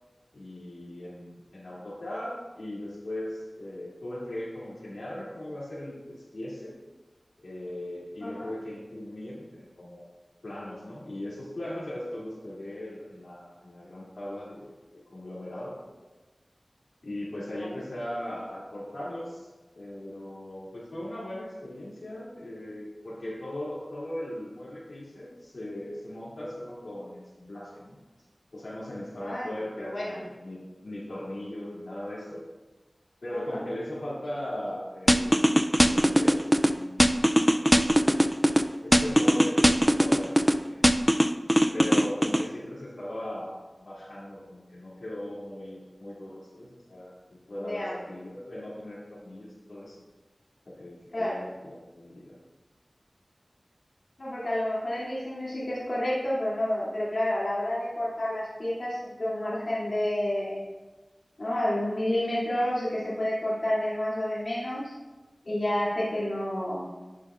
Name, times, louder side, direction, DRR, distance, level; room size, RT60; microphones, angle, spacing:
voice 1, 0.3-6.7 7.4-10.0 10.4-15.8 17.0-19.5 19.7-28.0 28.5-30.6 30.8-32.4 33.2-37.8 38.2-40.9 41.7-50.0 50.7-52.4, left 1 dB, 90° left, -9 dB, 3.0 m, -39 dB
voice 2, 29.2-30.2 33.3-33.6 47.6-48.0 51.1-51.4 54.2-60.6 61.4-64.9 65.4-66.9, left 1 dB, 70° left, -8 dB, 3.0 m, -30 dB
sound 1, 35.1-36.7 37.0-38.6 38.9-40.5 40.8-42.4, equal, 10° right, 0.5 m, -20 dB
12.0 x 7.4 x 2.6 m, 1.2 s
wide cardioid pair, 40°, 0 cm